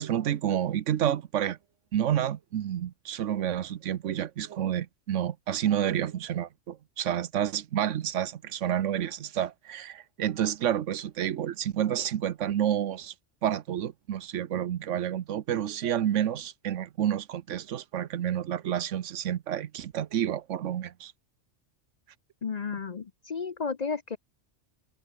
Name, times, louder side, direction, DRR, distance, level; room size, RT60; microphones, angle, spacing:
voice 1, 0.0-1.6 1.9-13.1 13.4-21.1, right 10 dB, 80° right, 1.1 m, -29 dB
voice 2, 22.4-24.2, left 5 dB, 40° left, 0.7 m, -33 dB
omnidirectional pair, 1.3 m